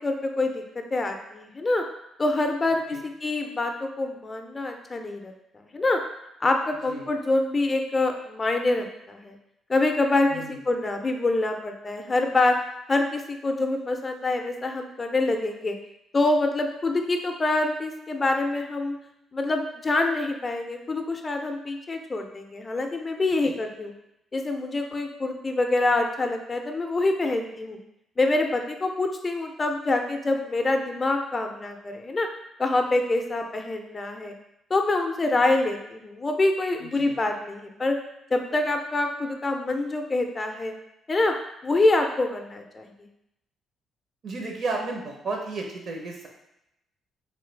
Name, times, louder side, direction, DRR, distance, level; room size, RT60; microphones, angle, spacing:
voice 1, 0.0-1.8 2.2-6.0 6.4-9.4 9.7-12.5 12.9-15.8 16.1-19.0 19.3-23.9 24.3-27.8 28.2-32.3 32.6-34.3 34.7-38.0 38.3-40.7 41.1-41.3 41.6-43.1, left 2 dB, 30° left, 4 dB, 0.4 m, -26 dB
voice 2, 2.7-3.0 6.9-7.1 10.3-10.6 23.3-23.4 36.8-37.2 44.2-46.3, right 3 dB, 60° right, 0 dB, 0.7 m, -33 dB
3.1 x 2.2 x 3.2 m, 0.84 s
cardioid pair, 90°, 0 cm